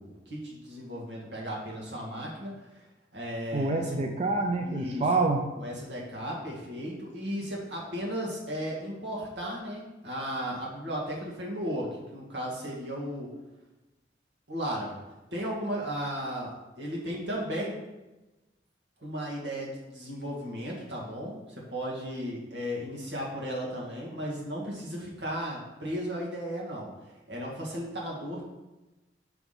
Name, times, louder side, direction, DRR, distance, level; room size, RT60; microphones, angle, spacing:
voice 1, 0.0-2.8 3.1-4.0 4.6-5.1 5.5-13.3 14.5-15.0 15.3-17.8 19.0-28.4, equal, 85° right, -3 dB, 1.9 m, -35 dB
voice 2, 3.5-5.6, right 3 dB, 35° right, 3 dB, 0.5 m, -27 dB
5.9 x 3.5 x 5.7 m, 1.1 s
head